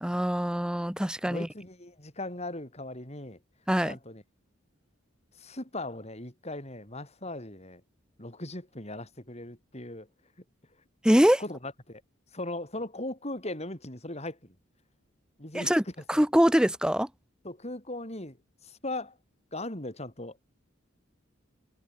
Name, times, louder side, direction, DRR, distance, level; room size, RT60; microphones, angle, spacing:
voice 1, 0.0-1.5 3.7-4.0 11.0-11.4 15.5-15.8 16.1-17.1, equal, 5° right, 1.1 m, -23 dB
voice 2, 1.3-3.4 3.9-4.2 5.4-7.8 8.2-10.1 11.4-12.0 12.3-14.5 15.4-15.7 16.1-16.2 17.4-18.4 18.6-19.2 19.5-20.4, left 2 dB, 30° left, 5.9 m, -38 dB
head